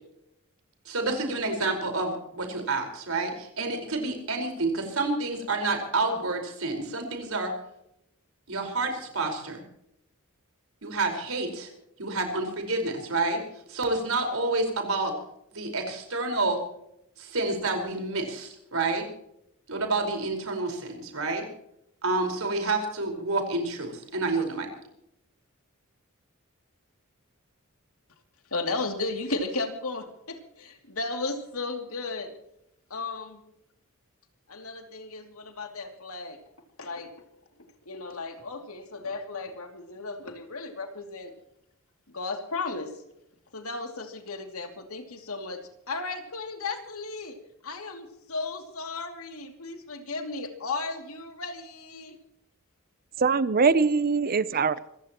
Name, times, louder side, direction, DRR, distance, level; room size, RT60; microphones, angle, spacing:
voice 1, 0.8-7.5 8.5-9.6 10.8-11.7 12.0-13.4 13.7-15.1 15.5-16.6 17.2-19.0 19.7-21.4 22.0-24.7, right 3 dB, 75° right, 4 dB, 4.9 m, -29 dB
voice 2, 28.5-32.3 32.9-33.4 34.5-36.4 36.8-37.1 37.6-41.3 42.1-43.0 43.5-47.4 47.6-52.2 54.5-54.6, left 3 dB, 80° left, 5 dB, 2.7 m, -35 dB
voice 3, 53.2-54.8, right 4 dB, 45° right, 16 dB, 0.7 m, -22 dB
26.0 x 16.0 x 3.0 m, 0.79 s
head